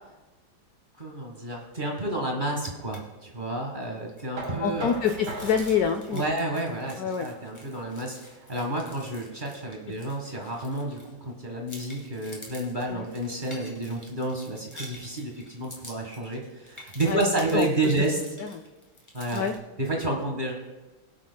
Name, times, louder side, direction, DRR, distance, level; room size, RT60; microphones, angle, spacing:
voice 1, 1.0-4.9 6.1-18.2 19.1-19.5 19.8-20.5, right 2 dB, 25° right, 0 dB, 1.4 m, -30 dB
sound 1, 2.5-3.0 3.3-3.4 3.8-11.3 11.7-19.6, left 1 dB, 15° left, 2.2 m, -48 dB
Knock, 4.4-10.2, right 2 dB, 85° right, 3.4 m, -42 dB
voice 2, 4.6-6.2 7.0-7.3 12.9-13.1 17.1-17.2 17.5-17.9 18.4-18.5 19.3-19.5, left 7 dB, 70° left, 7 dB, 0.9 m, -26 dB
23.0 x 8.4 x 2.2 m, 1.2 s
omnidirectional pair, 2.2 m